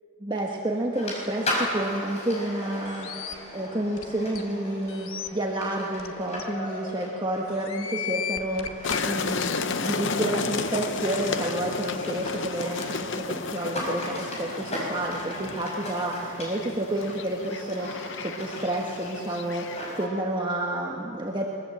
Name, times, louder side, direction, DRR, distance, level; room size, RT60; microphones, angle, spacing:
voice 1, 0.2-21.5, right 1 dB, 20° right, -1 dB, 1.4 m, -30 dB
sound 1, 0.9-20.1, left 1 dB, 30° left, 5.7 m, -37 dB
sound 2, 2.9-3.3 4.0-4.1 4.3-4.4 4.9-5.3 6.0-6.1 6.4-6.5 7.5-9.0, left 8 dB, 70° left, 1.4 m, -34 dB
sound 3, 8.8-20.1, left 4 dB, 55° left, 0.8 m, -33 dB
22.0 x 22.0 x 7.8 m, 2.8 s
head